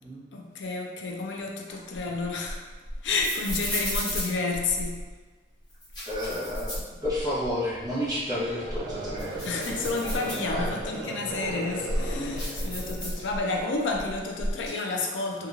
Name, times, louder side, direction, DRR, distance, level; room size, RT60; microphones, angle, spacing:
voice 1, 0.3-2.6 3.0-5.0 9.4-15.5, left 3 dB, 90° left, 1 dB, 0.4 m, -30 dB
sound 1, 1.7-5.1 5.7-7.5 7.9-8.0 8.5-10.9 11.4-13.6 13.9-14.7, equal, 25° left, 0.8 m, -33 dB
voice 2, 6.1-9.5 10.4-10.7, left 1 dB, 20° right, -8 dB, 0.9 m, -31 dB
Conversation / Crowd, 8.3-13.6, right 1 dB, 85° right, 0.4 m, -37 dB
3.0 x 2.3 x 2.3 m, 1.4 s
head